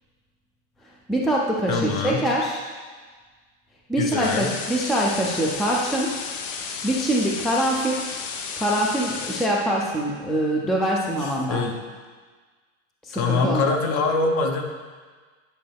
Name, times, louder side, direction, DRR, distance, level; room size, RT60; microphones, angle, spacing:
voice 1, 1.1-2.6 3.9-6.1 6.8-8.1 8.6-11.6 13.0-13.7, right 1 dB, ahead, -2 dB, 0.3 m, -24 dB
voice 2, 1.7-2.2 4.0-4.5 11.2-11.8 13.1-14.6, left 4 dB, 45° left, 4 dB, 1.0 m, -24 dB
sound 1, 4.2-9.5, left 5 dB, 75° left, 0.9 m, -33 dB
10.0 x 5.5 x 3.4 m, 1.5 s
supercardioid pair, 135°, 38 cm